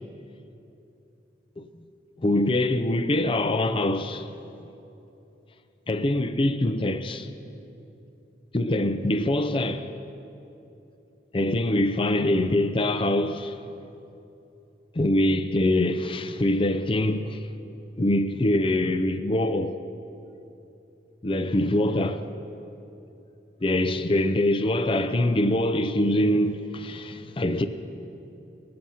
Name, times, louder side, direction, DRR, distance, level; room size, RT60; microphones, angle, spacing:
voice 1, 2.2-4.3 5.9-7.3 8.5-9.9 11.3-13.6 14.9-17.4 18.0-19.8 21.2-22.3 23.6-27.7, left 1 dB, 30° left, 0.5 m, -24 dB
18.5 x 7.7 x 5.6 m
head